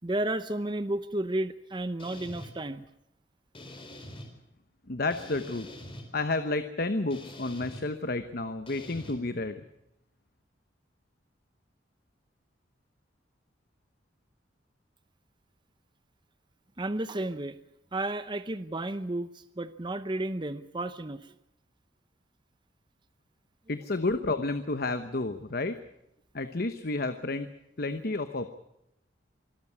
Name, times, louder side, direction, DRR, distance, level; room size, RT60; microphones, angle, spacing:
voice 1, 0.0-2.8 16.8-17.6 17.9-21.3, right 1 dB, 25° right, 11 dB, 0.8 m, -32 dB
sound 1, 2.0-2.5 3.5-4.3 5.1-6.0 7.1-7.8 8.7-9.1, left 1 dB, 30° left, 4.6 m, -44 dB
voice 2, 4.9-5.7 6.1-9.6 23.7-25.8 26.3-27.5 27.8-28.5, left 2 dB, 55° left, 9 dB, 1.0 m, -31 dB
25.0 x 13.5 x 9.7 m, 0.83 s
head